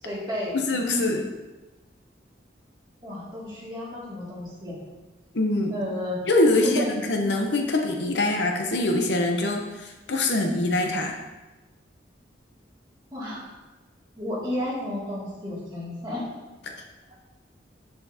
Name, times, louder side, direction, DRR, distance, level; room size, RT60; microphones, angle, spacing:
voice 1, 0.0-0.6 3.0-4.8 5.7-6.2 6.6-6.8 13.1-13.4 14.2-16.3, left 1 dB, 25° right, -8 dB, 2.3 m, -32 dB
voice 2, 0.5-1.3 5.3-5.8 6.3-11.2, left 2 dB, 60° left, 3 dB, 0.7 m, -24 dB
8.0 x 6.8 x 2.8 m, 1.1 s
head